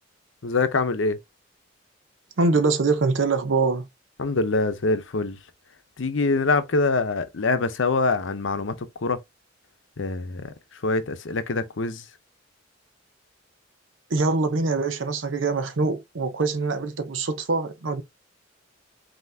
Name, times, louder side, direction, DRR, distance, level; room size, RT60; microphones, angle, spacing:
voice 1, 0.4-1.2 4.2-5.4 6.0-9.2 10.0-12.1, left 3 dB, 70° left, 0.7 m, -24 dB
voice 2, 2.4-3.9 14.1-18.0, right 3 dB, 75° right, 0.7 m, -24 dB
5.6 x 2.8 x 2.7 m
head